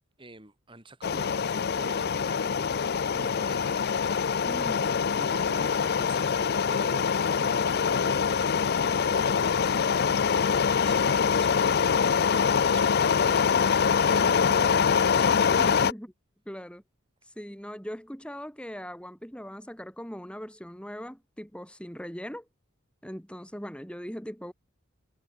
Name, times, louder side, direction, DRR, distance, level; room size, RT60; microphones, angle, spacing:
voice 1, 0.2-4.8 5.1-15.4, right 2 dB, 25° right, 6.0 m, -48 dB
sound 1, 1.0-15.9, left 6 dB, 50° left, 0.5 m, -24 dB
voice 2, 4.4-5.0 15.6-16.1 16.5-16.8 17.2-22.5 23.0-24.5, equal, 5° left, 7.3 m, -40 dB
head